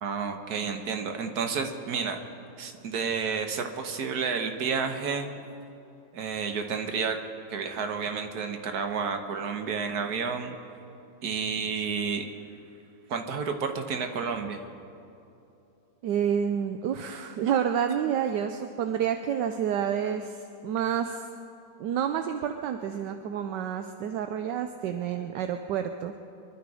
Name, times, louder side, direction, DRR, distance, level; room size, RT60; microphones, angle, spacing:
voice 1, 0.0-2.2 2.6-5.3 6.1-7.2 7.5-10.5 11.2-12.3 13.1-14.6, right 5 dB, 55° right, 5 dB, 1.6 m, -30 dB
voice 2, 16.0-21.3 21.8-26.1, right 8 dB, 75° right, 7 dB, 1.2 m, -29 dB
25.0 x 11.5 x 4.9 m, 2.8 s
omnidirectional pair, 2.1 m